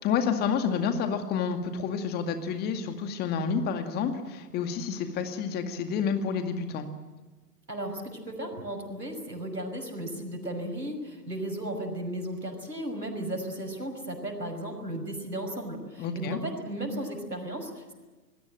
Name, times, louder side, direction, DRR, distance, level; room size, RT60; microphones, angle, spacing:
voice 1, 0.0-6.9 16.0-16.4, left 6 dB, 20° left, 7 dB, 2.1 m, -29 dB
voice 2, 7.7-17.9, right 1 dB, 85° right, 4 dB, 5.8 m, -35 dB
27.0 x 20.5 x 7.7 m, 1.3 s
figure-of-eight pair, 115°, 48 cm